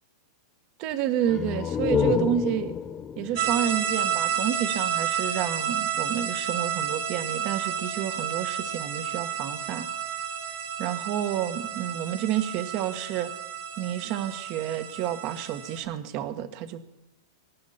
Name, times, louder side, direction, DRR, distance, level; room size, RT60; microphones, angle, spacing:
voice 1, 0.8-2.8 3.2-9.9 10.8-13.3 13.8-16.9, right 10 dB, 40° right, 10 dB, 1.4 m, -30 dB
sound 1, 1.2-4.8, left 8 dB, 20° left, 0.7 m, -29 dB
sound 2, 3.4-15.8, right 8 dB, 70° right, 2.0 m, -31 dB
22.5 x 11.5 x 4.3 m, 0.89 s
supercardioid pair, 155°, 2 cm